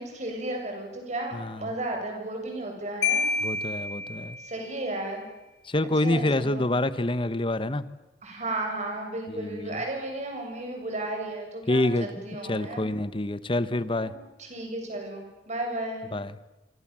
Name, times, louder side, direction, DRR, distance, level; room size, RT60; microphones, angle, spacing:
voice 1, 0.0-3.3 4.4-5.2 6.0-6.7 8.2-12.8 13.9-16.1, right 1 dB, 40° right, 2 dB, 7.8 m, -34 dB
voice 2, 1.3-1.7 3.4-4.4 5.6-7.8 9.3-9.8 11.7-14.1 16.1-16.3, left 1 dB, 30° left, 14 dB, 1.1 m, -27 dB
Marimba xylophone, 3.0-4.8, left 4 dB, 80° left, 3.2 m, -29 dB
27.5 x 27.0 x 7.6 m, 1.1 s
head